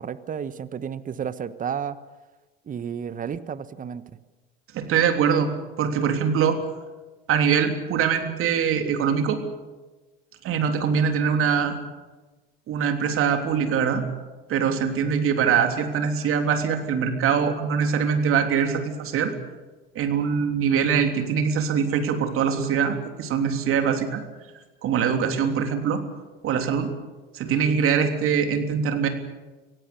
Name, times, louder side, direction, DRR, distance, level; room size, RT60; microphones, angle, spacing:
voice 1, 0.0-2.0 2.7-4.0, right 7 dB, 30° right, 14 dB, 1.2 m, -32 dB
voice 2, 4.7-5.5 5.8-6.6 7.3-9.4 10.4-11.8 12.7-14.0 14.5-19.3 19.9-24.2 24.8-26.0 26.4-26.9 27.3-29.1, right 7 dB, 45° right, 6 dB, 3.3 m, -23 dB
25.5 x 17.0 x 7.0 m, 1.2 s
hypercardioid pair, 80°, 29 cm